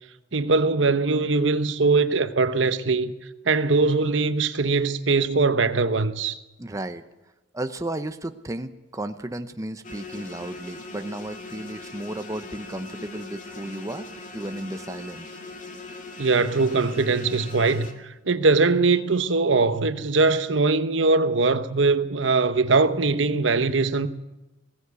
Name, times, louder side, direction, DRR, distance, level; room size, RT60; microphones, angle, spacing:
voice 1, 0.3-3.1 3.4-6.4 16.2-24.1, right 3 dB, 75° right, 1.0 m, -21 dB
voice 2, 6.6-7.0 7.5-14.1 14.3-15.3, right 1 dB, 15° right, 0.8 m, -34 dB
sound 1, 9.8-17.9, left 2 dB, 40° left, 2.4 m, -40 dB
20.5 x 17.0 x 8.3 m
head